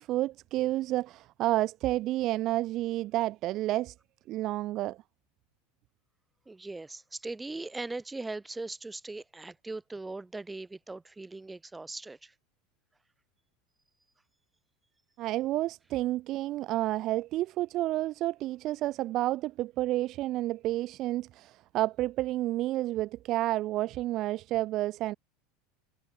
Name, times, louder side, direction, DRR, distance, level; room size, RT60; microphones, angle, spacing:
voice 1, 0.0-3.9 4.3-5.0 15.2-25.1, right 16 dB, 50° right, 1.2 m, -30 dB
voice 2, 6.5-12.3, right 3 dB, 10° right, 6.5 m, -40 dB
hypercardioid pair, 80°, 0 cm